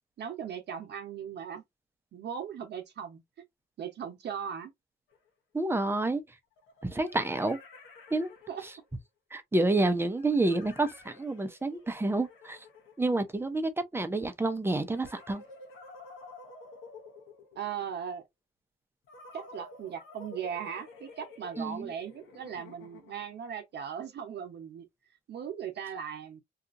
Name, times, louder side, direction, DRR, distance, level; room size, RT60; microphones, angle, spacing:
voice 1, 0.2-1.6 2.1-3.2 3.8-4.7 8.5-8.7 17.6-18.2 19.3-24.9 25.3-26.4, right 8 dB, 60° right, 0.8 m, -38 dB
sound 1, 5.1-5.2 6.6-8.9 10.2-13.6 14.9-17.9 19.1-23.4, left 3 dB, 90° left, 1.1 m, -51 dB
voice 2, 5.5-6.2 6.8-7.6 8.1-8.3 9.3-12.6 13.0-15.4 21.6-21.9, right 2 dB, 10° right, 0.6 m, -29 dB
2.8 x 2.5 x 2.5 m
cardioid pair, 90°, 20 cm